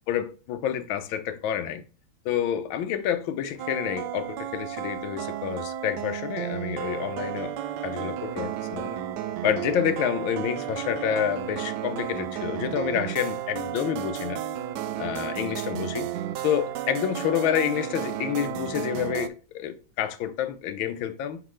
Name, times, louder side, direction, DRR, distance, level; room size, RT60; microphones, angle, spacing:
voice 1, 0.1-1.8 2.2-7.5 7.8-9.0 9.4-14.4 15.0-16.1 16.4-21.4, left 10 dB, 85° left, 1.5 m, -28 dB
suspenseful music, 3.6-19.3, right 11 dB, 75° right, 1.1 m, -33 dB
5.9 x 5.2 x 3.1 m
omnidirectional pair, 2.1 m